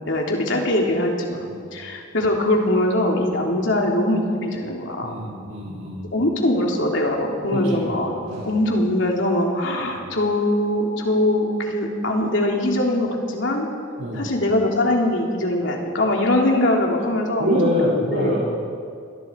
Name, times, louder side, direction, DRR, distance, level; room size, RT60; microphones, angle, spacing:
voice 1, 0.1-5.2 6.1-8.1 8.5-13.7 14.1-18.4, left 1 dB, 60° left, 0 dB, 3.5 m, -22 dB
voice 2, 5.0-6.0 7.5-7.9 8.2-8.5 9.8-10.0 14.0-14.3 17.4-18.6, equal, 85° right, -6 dB, 6.1 m, -25 dB
28.0 x 22.0 x 4.8 m, 2.3 s
head